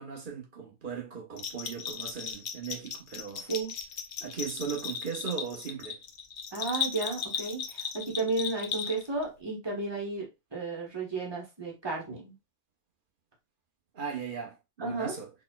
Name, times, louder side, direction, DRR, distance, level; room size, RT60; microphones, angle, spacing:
voice 1, 0.0-3.5 4.2-6.0 13.9-15.3, right 6 dB, 50° right, 1.2 m, -38 dB
Bell, 1.4-9.2, left 7 dB, 55° left, 0.7 m, -36 dB
voice 2, 6.5-12.3 14.8-15.2, right 3 dB, 20° right, 1.5 m, -33 dB
4.3 x 3.6 x 2.3 m
omnidirectional pair, 1.2 m